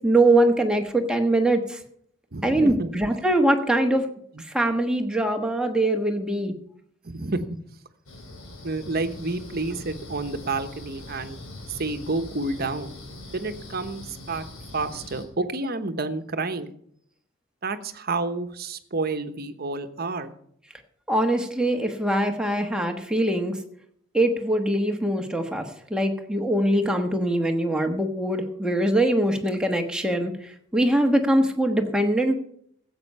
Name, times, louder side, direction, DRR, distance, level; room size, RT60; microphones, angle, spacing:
voice 1, 0.0-1.8 2.4-4.1 4.4-6.5 21.1-23.6 24.1-32.3, right 1 dB, 5° right, 4 dB, 1.3 m, -22 dB
voice 2, 2.3-2.9 7.0-7.6 8.6-11.4 11.7-12.9 13.3-14.4 14.7-16.7 17.6-20.3, right 3 dB, 50° right, 9 dB, 1.1 m, -29 dB
sound 1, 8.1-15.3, left 1 dB, 90° left, 3.2 m, -42 dB
15.5 x 8.3 x 5.5 m, 0.67 s
head